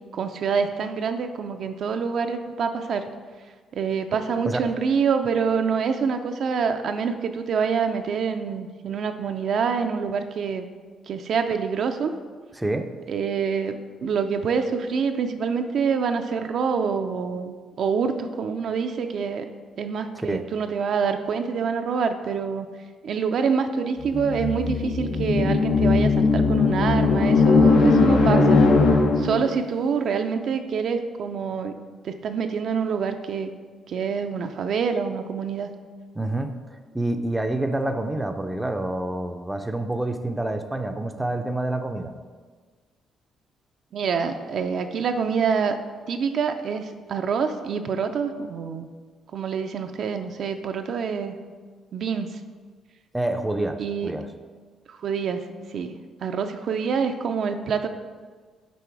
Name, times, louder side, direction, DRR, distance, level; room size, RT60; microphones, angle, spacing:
voice 1, 0.1-3.1 3.7-10.7 11.1-12.1 13.1-19.5 19.8-22.7 23.0-28.6 29.2-31.8 32.0-33.5 33.9-35.7 43.9-45.8 46.1-48.9 49.3-51.3 51.9-52.4 53.8-54.2 54.9-55.4 55.7-55.9 56.2-57.9, right 6 dB, 65° right, 7 dB, 0.4 m, -26 dB
sound 1, 24.0-29.5, left 3 dB, 70° left, 0.7 m, -19 dB
voice 2, 36.2-36.6 36.9-42.1 53.1-54.2, right 1 dB, 10° right, 7 dB, 0.5 m, -27 dB
6.9 x 4.1 x 4.7 m, 1.5 s
cardioid pair, 90°, 0 cm